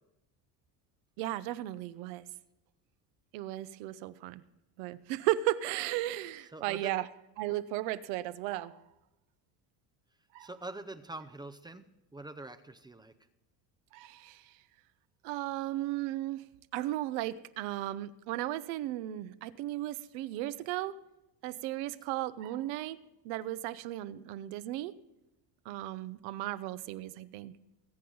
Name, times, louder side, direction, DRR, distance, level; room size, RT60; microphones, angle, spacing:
voice 1, 1.2-2.3 3.3-4.4 4.8-7.1 7.4-8.8 10.3-10.5 13.9-14.5 15.2-16.4 16.7-21.0 21.4-23.0 23.2-24.9 25.6-27.5, right 15 dB, 75° right, 14 dB, 0.9 m, -35 dB
voice 2, 6.5-6.9 10.4-11.9 12.1-13.1, right 2 dB, 10° right, 9 dB, 0.5 m, -44 dB
21.0 x 8.6 x 3.9 m, 0.94 s
cardioid pair, 135°, 48 cm